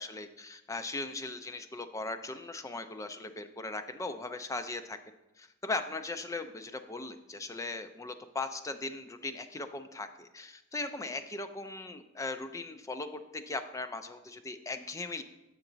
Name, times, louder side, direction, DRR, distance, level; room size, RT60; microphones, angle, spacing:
voice 1, 0.0-5.0 5.4-15.2, left 3 dB, 15° left, 8 dB, 0.3 m, -38 dB
7.1 x 5.7 x 3.9 m, 0.97 s
head